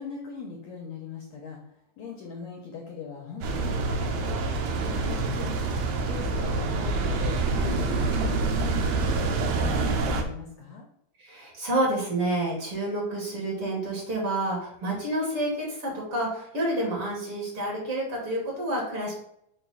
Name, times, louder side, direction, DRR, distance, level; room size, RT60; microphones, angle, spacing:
voice 1, 0.0-7.4 7.6-10.8, left 5 dB, 70° left, 1 dB, 1.7 m, -41 dB
sound 1, 3.4-10.2, right 3 dB, 85° right, 2.5 m, -26 dB
voice 2, 11.2-19.1, right 1 dB, 45° right, -3 dB, 2.3 m, -29 dB
6.5 x 2.6 x 5.5 m, 0.73 s
omnidirectional pair, 3.8 m